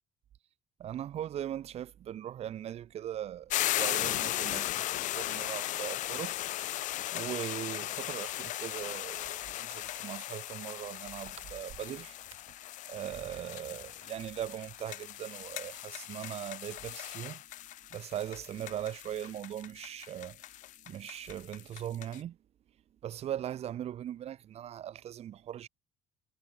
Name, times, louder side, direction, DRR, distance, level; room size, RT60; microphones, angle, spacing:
voice 1, 0.8-6.3 7.1-12.2 12.9-17.4 17.9-20.4 20.9-22.4 23.0-25.7, right 11 dB, 50° right, 1.8 m, -40 dB
sound 1, 3.5-22.2, left 15 dB, 70° left, 3.4 m, -37 dB
cardioid pair, 120°, 14 cm